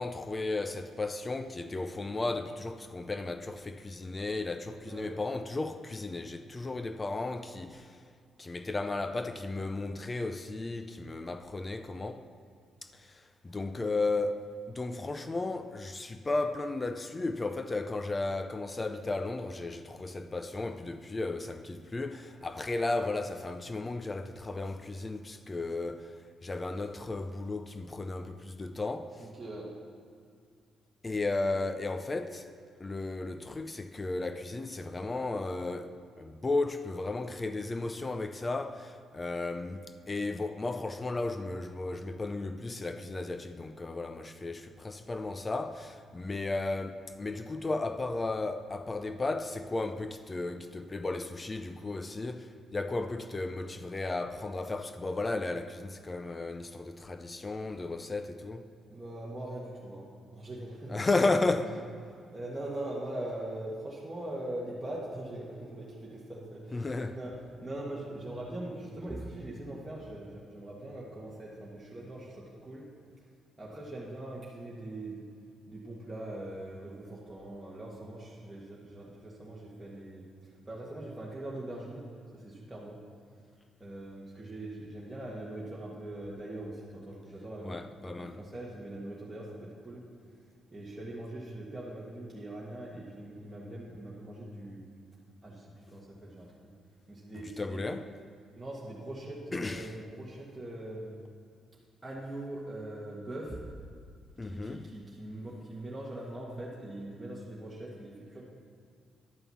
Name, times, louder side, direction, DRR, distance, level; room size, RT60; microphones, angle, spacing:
voice 1, 0.0-8.0 8.4-12.3 12.8-26.2 26.4-29.3 31.0-32.5 32.8-58.6 60.9-61.7 66.7-67.2 87.6-88.4 97.6-98.1 99.5-99.9 104.4-104.9, left 2 dB, 25° left, 0.5 m, -34 dB
voice 2, 4.8-5.1 29.2-29.7 58.9-61.0 62.1-67.3 67.6-72.8 73.6-75.3 75.7-83.0 83.8-90.1 90.7-94.9 95.4-96.6 97.1-97.8 98.5-101.2 102.0-103.6 104.4-108.4, right 1 dB, 10° right, 1.7 m, -42 dB
11.0 x 5.5 x 7.1 m
cardioid pair, 90°, 0 cm